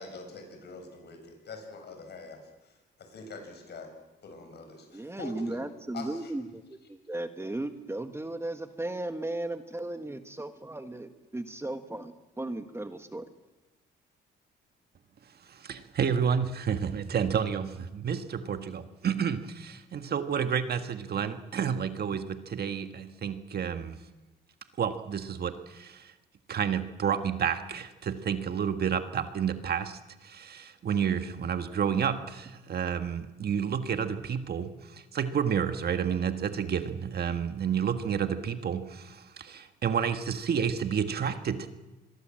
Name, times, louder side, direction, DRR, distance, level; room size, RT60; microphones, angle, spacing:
voice 1, 0.0-3.9 4.2-5.6 5.9-6.3, left 3 dB, 55° left, 5 dB, 7.1 m, -44 dB
voice 2, 4.9-6.6 6.9-13.3, right 2 dB, 15° right, 8 dB, 1.5 m, -36 dB
voice 3, 15.4-24.0 24.8-26.1 26.5-41.7, right 7 dB, 55° right, 8 dB, 1.6 m, -30 dB
26.0 x 22.0 x 7.7 m, 1.1 s
cardioid pair, 90°, 20 cm